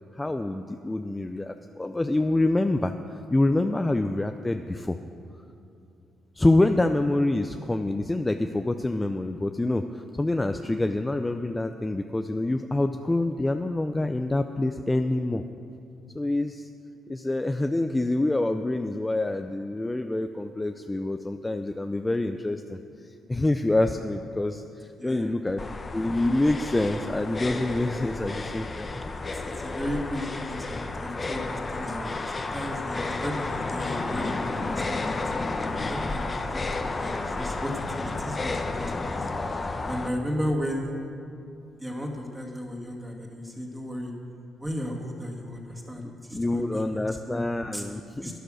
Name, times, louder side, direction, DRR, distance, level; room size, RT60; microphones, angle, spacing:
voice 1, 0.1-5.0 6.4-15.4 16.1-16.7 17.1-25.6 25.9-29.0 46.3-48.3, left 2 dB, 15° left, 7 dB, 0.5 m, -26 dB
voice 2, 25.0-25.3 29.3-35.2 35.8-39.3 39.8-40.9 41.8-44.1 44.6-46.9 47.3-47.4 47.7-47.8 48.2-48.4, equal, 10° right, -1 dB, 2.3 m, -35 dB
sound 1, 25.6-40.1, left 3 dB, 30° left, 0.9 m, -32 dB
11.5 x 10.0 x 6.4 m, 2.6 s
cardioid pair, 90°, 0 cm